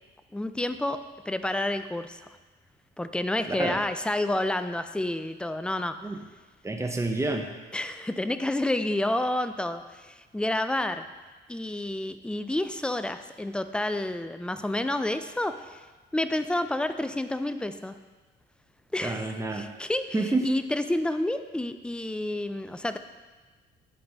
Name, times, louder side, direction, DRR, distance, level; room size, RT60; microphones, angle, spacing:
voice 1, 0.3-2.2 3.0-6.0 7.7-11.1 11.5-15.8 16.1-18.0 18.9-19.2 19.5-20.0 20.4-23.0, left 1 dB, 5° left, 10 dB, 0.3 m, -29 dB
voice 2, 3.5-3.8 6.0-6.2 6.6-7.5 19.0-19.7 20.1-20.5, right 2 dB, 15° right, 4 dB, 0.8 m, -28 dB
11.0 x 4.0 x 3.5 m, 1.3 s
cardioid pair, 90°, 20 cm